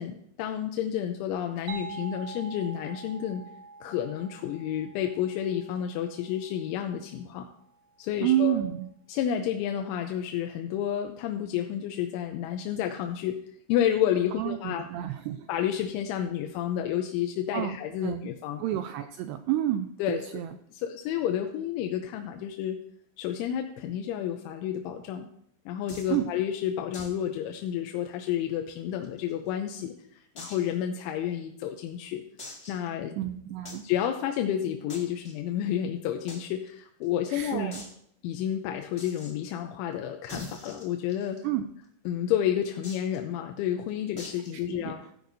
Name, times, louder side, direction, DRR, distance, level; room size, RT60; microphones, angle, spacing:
voice 1, 0.0-3.4 3.8-7.5 8.0-8.6 9.1-13.4 13.7-14.9 15.5-18.6 20.0-20.2 20.7-22.8 23.2-25.3 25.7-32.2 32.7-33.2 33.8-37.7 38.2-41.4 42.1-45.0, left 10 dB, 90° left, 4 dB, 3.2 m, -30 dB
sound 1, 1.7-7.1, right 5 dB, 65° right, 3.3 m, -45 dB
voice 2, 8.2-8.9 14.4-15.5 17.5-17.8 18.0-18.3 18.6-20.6 26.1-26.3 33.2-33.8 37.3-37.8 41.4-41.6 44.7-45.1, right 12 dB, 85° right, 8 dB, 2.4 m, -30 dB
sound 2, 25.9-26.2 26.9-27.2 27.5-27.6 28.0-28.1 28.7-29.5 30.3-30.7 31.3-31.4 32.4-32.9 33.6-33.9 34.9-35.3 36.3-36.4 36.7-36.8 37.0-37.1 37.7-37.9 39.0-39.3 40.3-41.4 42.8-43.2 44.2-44.5, left 2 dB, 45° left, 0.9 m, -43 dB
15.0 x 10.0 x 2.7 m, 0.70 s
omnidirectional pair, 5.3 m